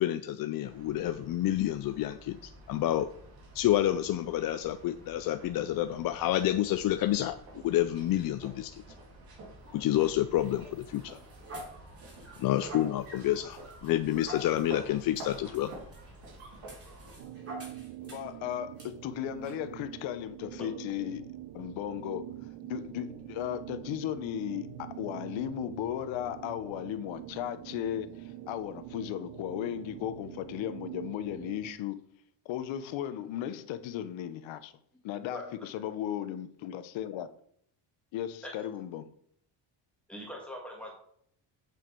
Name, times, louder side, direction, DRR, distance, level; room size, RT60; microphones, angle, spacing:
voice 1, 0.0-3.1 3.5-7.4 7.6-8.8 9.7-11.2 12.4-15.7, left 13 dB, 50° left, 0.5 m, -29 dB
sound 1, 0.6-17.2, right 2 dB, 50° right, 2.2 m, -49 dB
sound 2, 9.6-18.4 18.8-18.9 19.4-19.6, right 1 dB, 30° right, 2.9 m, -48 dB
sound 3, 17.2-31.7, right 13 dB, 80° right, 0.9 m, -45 dB
voice 2, 18.0-22.3 22.6-32.0 32.4-34.7 35.0-37.3 38.1-39.1, left 11 dB, 90° left, 0.9 m, -36 dB
voice 3, 40.1-40.9, equal, 5° left, 1.7 m, -42 dB
8.3 x 7.0 x 4.5 m
cardioid pair, 165°, 45 cm